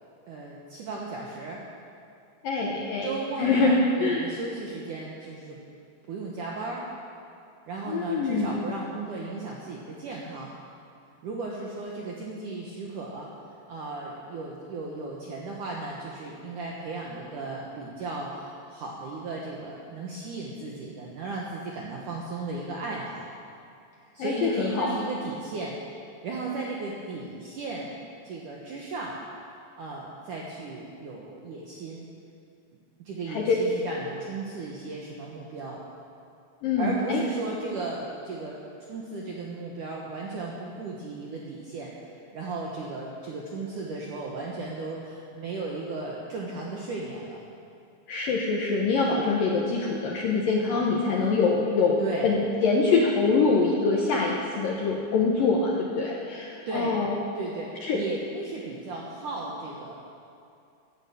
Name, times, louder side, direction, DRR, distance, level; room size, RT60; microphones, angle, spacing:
voice 1, 0.2-1.6 3.0-5.6 6.1-6.8 7.7-10.5 11.2-13.3 13.7-23.3 24.1-25.8 26.2-27.9 28.2-29.2 29.8-32.1 33.0-35.8 36.8-41.9 42.3-47.4 52.0-52.3 56.7-57.0 57.4-60.0, right 3 dB, 70° right, -3 dB, 1.9 m, -35 dB
voice 2, 2.4-3.1 3.4-4.3 7.9-8.5 24.2-24.9 33.3-33.6 36.6-37.2 48.1-57.1 57.8-58.0, left 4 dB, 70° left, -2 dB, 2.2 m, -24 dB
16.0 x 10.0 x 7.0 m, 2.5 s
omnidirectional pair, 5.4 m